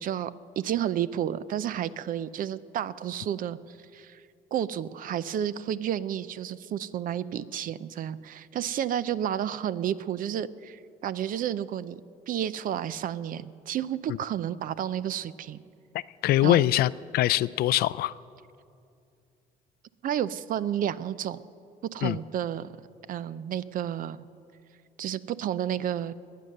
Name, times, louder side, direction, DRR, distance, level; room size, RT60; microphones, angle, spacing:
voice 1, 0.0-4.2 4.5-12.0 12.3-15.6 16.4-16.6 20.0-21.4 21.9-22.8 23.1-24.3 25.0-26.1, right 10 dB, 55° right, 17 dB, 0.6 m, -31 dB
voice 2, 16.2-18.1 22.0-22.2, left 14 dB, 65° left, 19 dB, 0.4 m, -23 dB
21.0 x 9.3 x 6.6 m, 2.4 s
cardioid pair, 110°, 17 cm